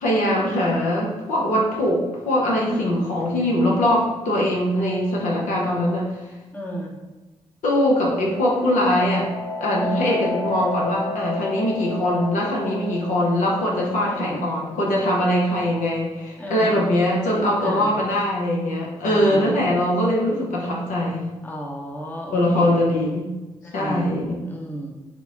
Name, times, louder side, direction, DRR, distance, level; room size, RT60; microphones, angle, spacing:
voice 1, 0.0-6.1 7.6-9.3 9.6-21.3 22.3-23.3 23.7-24.4, left 1 dB, 65° left, -3 dB, 0.8 m, -22 dB
voice 2, 2.7-3.0 6.5-6.9 9.8-10.0 14.1-14.4 16.4-16.8 17.6-18.0 19.0-19.5 21.4-22.8 23.6-24.1 24.5-24.9, equal, 15° left, -1 dB, 0.8 m, -32 dB
sound 1, 8.2-17.7, left 2 dB, 25° right, 0.8 m, -33 dB
3.5 x 2.2 x 3.7 m, 1.1 s
hypercardioid pair, 40°, 14 cm